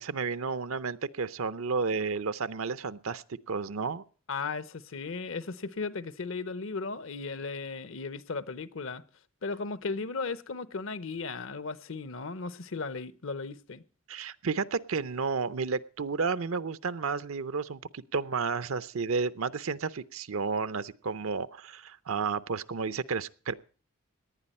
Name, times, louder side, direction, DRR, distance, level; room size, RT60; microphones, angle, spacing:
voice 1, 0.0-4.0 14.1-23.5, right 5 dB, 75° right, 0.6 m, -32 dB
voice 2, 4.3-9.0 9.4-13.8, left 4 dB, 65° left, 0.8 m, -36 dB
18.5 x 11.0 x 4.3 m
head